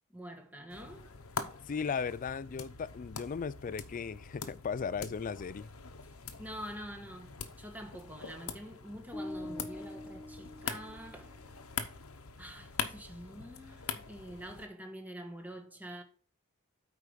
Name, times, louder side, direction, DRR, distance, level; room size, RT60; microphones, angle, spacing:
voice 1, 0.1-1.1 6.4-11.4 12.4-16.0, equal, 10° right, 1.3 m, -46 dB
sound 1, 0.7-14.7, left 6 dB, 70° left, 0.9 m, -43 dB
voice 2, 1.7-5.7, left 6 dB, 40° left, 0.4 m, -36 dB
sound 2, 9.1-11.3, left 1 dB, 10° left, 1.5 m, -44 dB
8.4 x 4.8 x 5.1 m
head